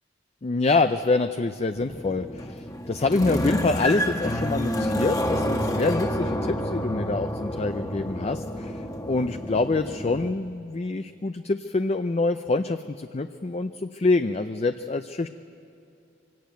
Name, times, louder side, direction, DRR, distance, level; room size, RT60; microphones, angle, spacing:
voice 1, 0.4-15.3, left 3 dB, 35° left, 9 dB, 0.5 m, -26 dB
sound 1, 1.8-10.3, equal, 20° left, 1.2 m, -29 dB
25.0 x 17.5 x 9.2 m, 2.6 s
head